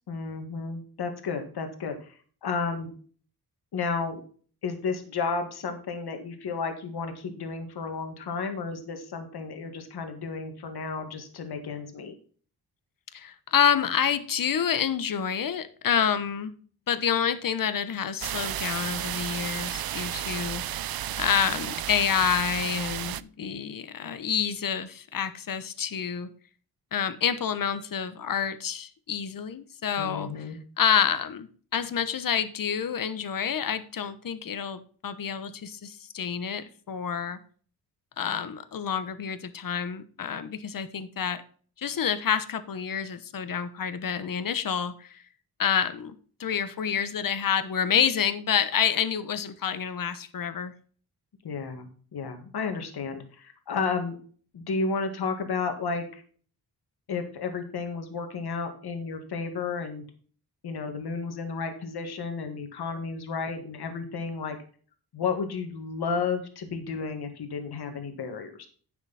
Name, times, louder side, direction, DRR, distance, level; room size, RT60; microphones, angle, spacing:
voice 1, 0.1-2.9 3.7-4.2 4.6-12.1 30.0-30.6 51.4-54.2 54.5-56.2 57.1-60.0 60.6-64.6 65.1-68.7, left 4 dB, 75° left, 6 dB, 1.9 m, -32 dB
voice 2, 13.1-16.5 16.9-20.9 21.2-26.3 26.9-30.4 30.8-37.4 38.2-41.4 41.8-45.2 45.6-46.1 46.4-50.7, left 8 dB, 60° left, 12 dB, 1.1 m, -28 dB
sound 1, 18.2-23.2, right 12 dB, 65° right, 0.5 m, -33 dB
10.0 x 7.1 x 4.1 m, 0.43 s
wide cardioid pair, 100°, 39 cm